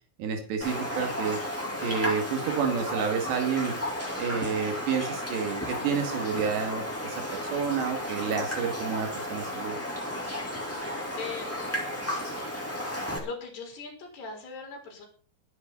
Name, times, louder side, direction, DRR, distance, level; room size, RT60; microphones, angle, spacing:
voice 1, 0.2-1.4 1.8-3.7 4.2-9.8, right 6 dB, 85° right, 4 dB, 4.4 m, -30 dB
Raindrop, 0.6-13.2, left 1 dB, 5° left, 3.0 m, -33 dB
voice 2, 10.8-11.8 13.2-15.1, left 4 dB, 75° left, 1 dB, 6.1 m, -40 dB
24.0 x 8.2 x 4.1 m, 0.40 s
omnidirectional pair, 4.8 m